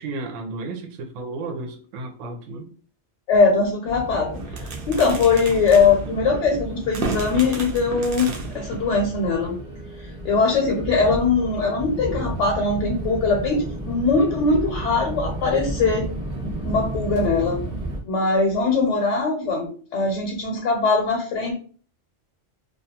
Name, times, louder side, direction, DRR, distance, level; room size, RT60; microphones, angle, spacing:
voice 1, 0.0-2.7, right 3 dB, 85° right, 2 dB, 0.9 m, -33 dB
voice 2, 3.3-4.3 4.6-8.3 8.5-9.5 10.0-16.1 16.6-17.6 18.0-21.5, left 4 dB, 80° left, 1 dB, 0.9 m, -21 dB
sound 1, 3.9-18.0, right 1 dB, 35° right, 0.9 m, -33 dB
sound 2, 4.3-9.5, right 3 dB, 60° right, 0.6 m, -33 dB
2.3 x 2.2 x 2.8 m, 0.43 s
omnidirectional pair, 1.2 m